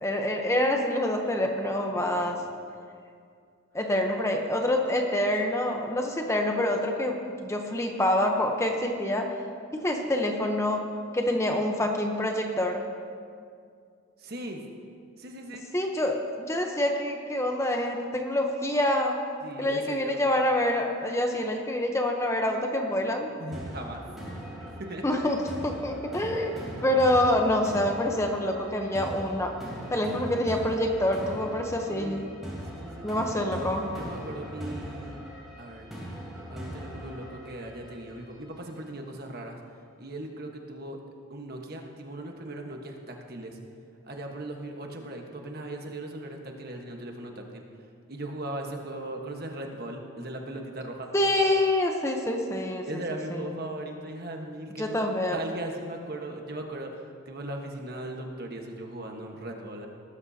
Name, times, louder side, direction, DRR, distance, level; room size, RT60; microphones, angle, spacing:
voice 1, 0.0-2.4 3.7-9.3 9.7-10.8 11.1-12.8 15.7-19.2 19.6-23.3 25.0-25.4 25.6-29.5 29.9-32.2 33.0-33.9 51.1-52.9 53.3-53.6 54.8-55.4, left 1 dB, 15° left, 2 dB, 0.8 m, -26 dB
voice 2, 2.0-2.4 14.2-14.6 15.2-15.7 19.4-20.2 23.4-24.0 24.8-25.0 31.9-32.3 32.7-33.1 34.0-35.2 35.6-35.9 36.5-39.6 40.0-41.0 41.3-43.6 44.1-47.6 48.1-51.1 52.9-55.0 55.3-59.9, right 1 dB, 50° right, 2 dB, 1.3 m, -38 dB
sound 1, 23.5-38.5, equal, ahead, 3.5 m, -40 dB
19.0 x 13.0 x 2.8 m, 2.3 s
head